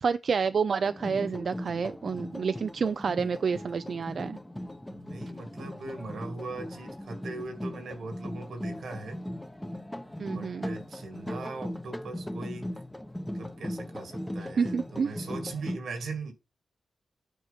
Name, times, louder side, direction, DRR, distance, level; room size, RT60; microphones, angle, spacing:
voice 1, 0.0-4.4 10.2-10.7 14.6-15.2, right 5 dB, 65° right, 0.4 m, -29 dB
sound 1, 0.8-15.8, left 1 dB, 10° left, 0.9 m, -38 dB
voice 2, 4.9-9.2 10.3-12.7 13.3-16.3, right 3 dB, 90° right, 2.1 m, -40 dB
9.1 x 4.5 x 5.7 m
cardioid pair, 85°, 0 cm